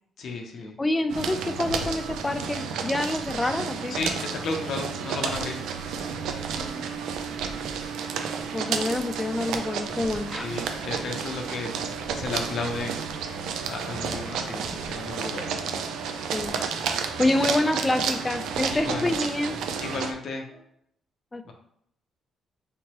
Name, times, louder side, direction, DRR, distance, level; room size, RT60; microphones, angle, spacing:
voice 1, 0.2-0.8 3.9-5.6 7.7-7.9 10.4-13.0 13.6-15.6 18.7-19.1 19.8-20.4, left 3 dB, 65° left, 2 dB, 0.6 m, -33 dB
voice 2, 0.8-4.0 6.6-7.0 8.5-10.5 16.3-16.5 16.9-19.6 21.3-21.5, left 2 dB, 20° left, 9 dB, 0.3 m, -27 dB
sound 1, 1.1-20.1, right 6 dB, 85° right, 0.4 m, -31 dB
sound 2, 8.1-18.9 20.4-20.6, right 1 dB, 65° right, 1.4 m, -51 dB
3.4 x 3.0 x 2.9 m, 0.70 s
cardioid pair, 90°, 0 cm